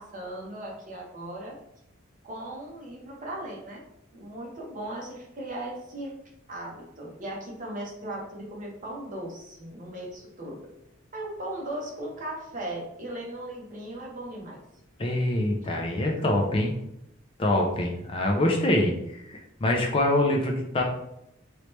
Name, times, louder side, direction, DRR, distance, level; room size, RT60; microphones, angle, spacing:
voice 1, 0.0-1.5 2.2-3.8 4.1-6.1 6.5-10.6 11.1-14.6, right 1 dB, 40° right, -2 dB, 1.0 m, -37 dB
voice 2, 15.0-16.7 17.4-20.8, left 1 dB, 25° left, 0 dB, 0.4 m, -25 dB
3.1 x 3.0 x 3.1 m, 0.82 s
head